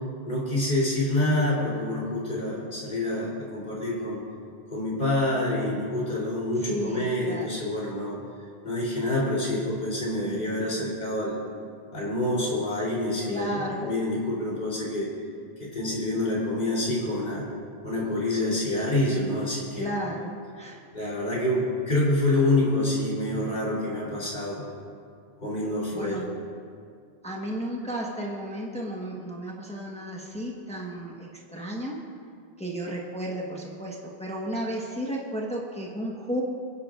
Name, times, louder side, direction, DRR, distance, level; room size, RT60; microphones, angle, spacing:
voice 1, 0.2-4.2 4.7-8.2 8.6-11.4 11.9-15.1 15.6-17.5 17.8-19.9 20.9-24.7 25.4-26.3, left 1 dB, 50° left, -5 dB, 3.8 m, -27 dB
voice 2, 6.7-7.5 13.3-13.9 19.7-20.8 25.9-26.3 27.2-32.0 32.6-36.4, right 1 dB, 5° left, -3 dB, 1.3 m, -33 dB
28.0 x 11.0 x 2.5 m, 2.2 s
omnidirectional pair, 1.0 m